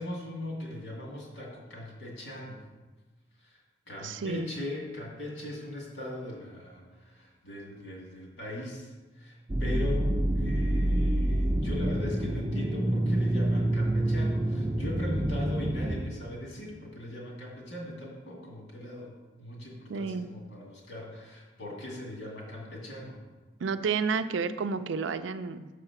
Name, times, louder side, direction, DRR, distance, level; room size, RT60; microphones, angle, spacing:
voice 1, 0.0-2.6 3.4-3.6 3.9-23.2, left 1 dB, 75° left, -2 dB, 2.2 m, -40 dB
voice 2, 4.0-4.5 19.9-20.3 23.6-25.7, right 5 dB, 85° right, 11 dB, 0.4 m, -31 dB
sound 1, 9.5-16.0, right 1 dB, 20° right, 0.5 m, -27 dB
6.6 x 4.9 x 5.8 m, 1.3 s
head